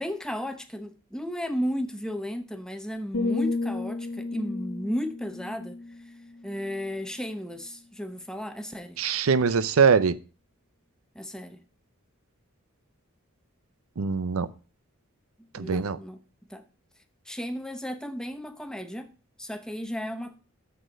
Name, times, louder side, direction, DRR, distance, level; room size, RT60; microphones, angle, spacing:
voice 1, 0.0-6.1 6.4-9.0 11.1-11.6 15.6-16.2 16.5-16.6 17.3-19.1 19.4-20.3, equal, 5° left, 0.8 m, -34 dB
sound 1, 3.1-7.1 7.5-7.8, left 3 dB, 80° left, 0.8 m, -33 dB
voice 2, 9.0-10.2 14.0-14.5 15.5-16.0, right 5 dB, 80° right, 0.6 m, -22 dB
7.0 x 6.3 x 6.2 m
head